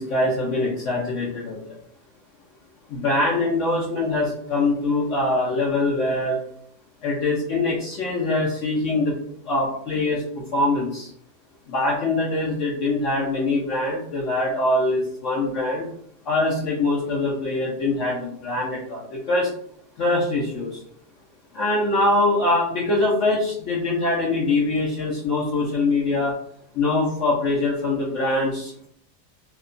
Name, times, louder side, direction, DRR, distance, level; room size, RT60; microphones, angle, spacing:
voice 1, 0.0-1.8 2.9-6.4 7.0-9.1 9.4-10.2 10.5-11.1 11.7-15.9 16.2-19.5 20.0-20.8 21.5-26.3 26.7-28.9, left 2 dB, 65° left, -5 dB, 0.8 m, -23 dB
2.9 x 2.1 x 2.4 m, 0.65 s
omnidirectional pair, 1.6 m